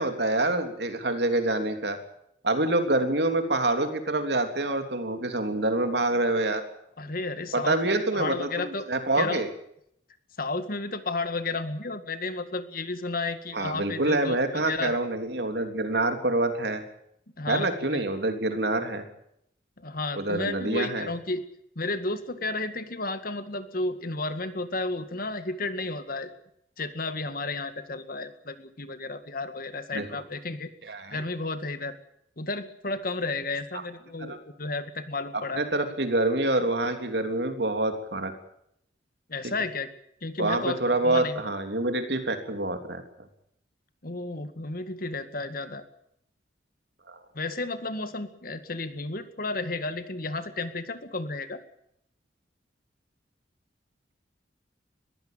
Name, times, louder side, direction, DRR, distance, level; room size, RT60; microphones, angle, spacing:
voice 1, 0.0-2.0 2.4-6.6 7.5-9.5 13.5-16.8 17.5-19.0 20.2-21.1 29.9-30.2 30.9-31.2 34.2-34.4 35.5-38.3 40.4-43.0 47.1-47.2, right 2 dB, 65° right, 6 dB, 3.4 m, -26 dB
voice 2, 7.0-8.9 9.2-9.4 10.4-15.0 17.4-18.0 19.8-21.4 21.8-26.3 26.8-30.7 31.1-32.0 32.4-35.6 39.3-39.9 40.2-40.8 41.0-41.4 44.0-45.8 47.3-51.6, left 3 dB, 50° left, 10 dB, 2.0 m, -32 dB
21.5 x 15.5 x 9.1 m, 0.73 s
head